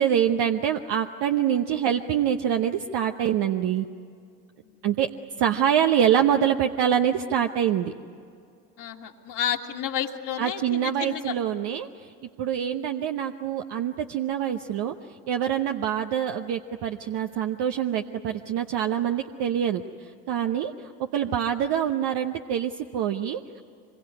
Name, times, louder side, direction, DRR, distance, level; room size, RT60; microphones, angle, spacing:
voice 1, 0.0-3.9 4.8-5.1 5.4-7.9 10.4-11.9 12.4-14.9 15.3-19.8 20.3-20.7 21.1-23.4, right 9 dB, 55° right, 5 dB, 1.0 m, -25 dB
voice 2, 8.8-11.4, left 9 dB, 55° left, -1 dB, 2.1 m, -31 dB
25.5 x 22.5 x 9.7 m, 2.4 s
hypercardioid pair, 60°, 48 cm